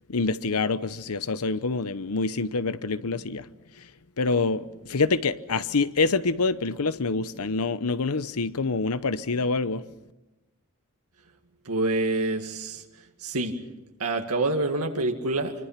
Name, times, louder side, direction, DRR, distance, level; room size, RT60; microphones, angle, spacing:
voice 1, 0.1-3.4 4.2-9.8, left 3 dB, 85° left, 0.9 m, -26 dB
voice 2, 11.6-12.8 13.2-13.6 14.0-15.5, right 2 dB, 90° right, 2.2 m, -27 dB
26.0 x 25.0 x 5.9 m
head